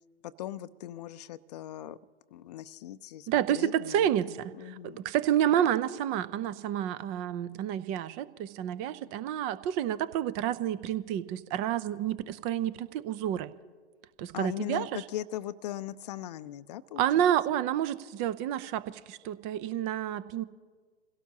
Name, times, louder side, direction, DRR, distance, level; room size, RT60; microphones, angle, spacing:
voice 1, 0.2-2.0 2.3-4.1 4.6-5.0 14.3-17.3, left 12 dB, 40° left, 15 dB, 0.5 m, -39 dB
voice 2, 3.3-13.5 14.2-14.9 17.0-20.4, right 10 dB, 20° right, 16 dB, 0.4 m, -29 dB
28.0 x 17.0 x 2.8 m, 1.5 s
figure-of-eight pair, 115°, 33 cm